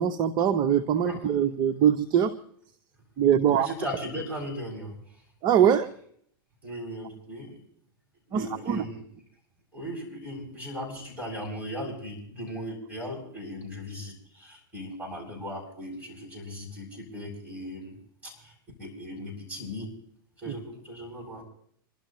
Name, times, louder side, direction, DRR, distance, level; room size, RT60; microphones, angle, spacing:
voice 1, 0.0-2.3 3.2-3.7 5.4-5.9 8.3-8.8 20.5-20.6, right 9 dB, 35° right, 10 dB, 0.8 m, -23 dB
voice 2, 3.5-4.9 6.6-7.6 8.3-9.0 9.7-18.0 18.2-18.5 18.8-19.9 20.4-21.4, equal, 10° right, -4 dB, 7.8 m, -37 dB
27.5 x 12.5 x 3.1 m, 0.65 s
hypercardioid pair, 115°, 12 cm